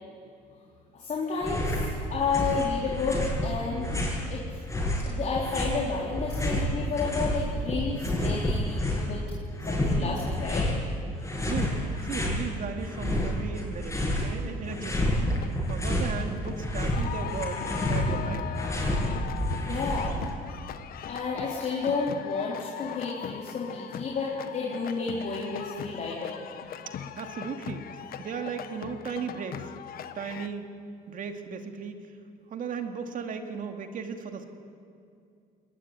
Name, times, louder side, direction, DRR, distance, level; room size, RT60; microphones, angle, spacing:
voice 1, 0.9-3.9 4.3-4.4 5.1-9.2 9.7-10.7 19.7-20.2 21.1-26.4, left 4 dB, 45° left, -3 dB, 3.8 m, -31 dB
sound 1, 1.4-1.9 2.2-4.3 4.7-7.4 7.7-9.1 9.6-10.8 11.2-12.4 12.8-14.3 14.6-16.1 16.4-20.3, left 1 dB, 15° left, 7.8 m, -29 dB
voice 2, 11.4-15.2 15.7-18.5 26.9-27.9 28.2-29.7 30.1-30.7 31.1-32.1 32.5-34.5, right 6 dB, 55° right, 6 dB, 2.4 m, -36 dB
sound 2, 15.3-15.8 16.2-30.5, left 9 dB, 60° left, 1.3 m, -39 dB
22.0 x 19.5 x 9.7 m, 2.5 s
cardioid pair, 110°, 17 cm